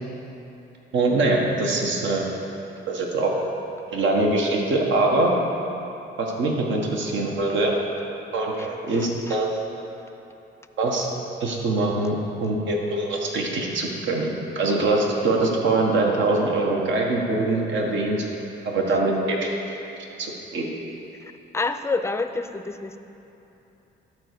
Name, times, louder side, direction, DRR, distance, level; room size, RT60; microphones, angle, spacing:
voice 1, 0.9-2.2 2.9-3.3 3.9-5.3 6.2-7.7 8.3-9.5 10.8-11.1 11.4-18.3 18.6-19.5 20.2-20.7, right 2 dB, 70° right, -1 dB, 1.4 m, -23 dB
voice 2, 8.9-9.4 18.9-19.0 21.2-23.0, left 3 dB, 15° left, 9 dB, 0.5 m, -29 dB
12.0 x 4.8 x 6.7 m, 3.0 s
cardioid pair, 90°, 20 cm